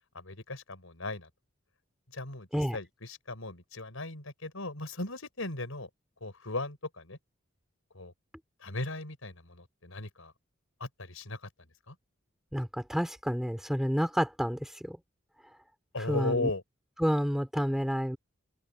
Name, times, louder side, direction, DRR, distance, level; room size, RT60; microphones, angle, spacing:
voice 1, 0.1-1.3 2.1-5.9 6.2-7.2 7.9-8.1 8.6-10.3 10.8-11.4 11.9-12.0 15.9-16.6, left 2 dB, 80° left, 4.8 m, -37 dB
voice 2, 12.5-15.0 16.0-16.5 17.0-18.2, equal, ahead, 3.4 m, -29 dB
open air
head